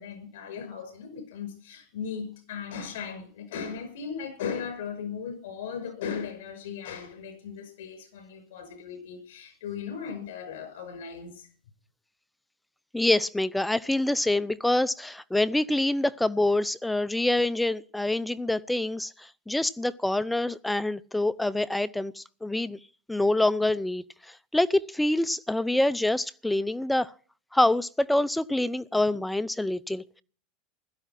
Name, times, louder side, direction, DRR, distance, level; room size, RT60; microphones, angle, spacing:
voice 1, 0.0-11.5, left 6 dB, 80° left, 6.0 m, -37 dB
voice 2, 12.9-22.8 23.1-27.1 27.5-30.2, left 1 dB, 5° left, 0.6 m, -26 dB
16.5 x 13.0 x 6.0 m
supercardioid pair, 110°, 0 cm